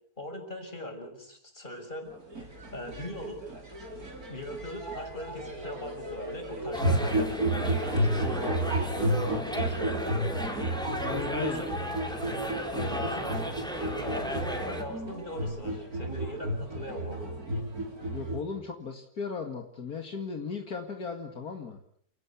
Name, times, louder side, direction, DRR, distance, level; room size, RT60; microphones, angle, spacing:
voice 1, 0.2-2.1 2.4-3.4 4.3-11.7 12.9-17.3, equal, 30° left, 4 dB, 6.2 m, -40 dB
sound 1, 2.1-18.4, right 1 dB, 65° right, 5.1 m, -32 dB
sound 2, 6.7-14.8, equal, ahead, 4.1 m, -35 dB
voice 2, 11.0-11.6 12.7-13.1 18.1-21.8, left 5 dB, 70° left, 4 dB, 2.6 m, -36 dB
29.0 x 17.5 x 8.5 m, 0.67 s
omnidirectional pair, 1.7 m